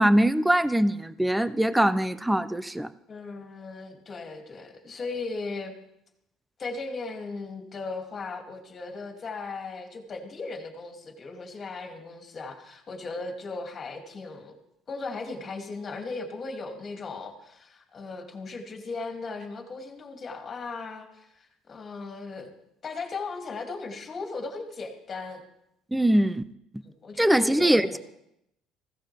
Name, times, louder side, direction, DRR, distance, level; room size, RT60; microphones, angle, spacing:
voice 1, 0.0-2.9 25.9-26.4 27.2-28.0, right 1 dB, 5° right, 14 dB, 0.5 m, -22 dB
voice 2, 3.1-5.7 6.6-14.6 14.9-22.5 22.8-25.4 27.0-28.0, left 3 dB, 30° left, 2 dB, 2.8 m, -37 dB
19.5 x 16.5 x 3.5 m, 0.79 s
cardioid pair, 145°, 0 cm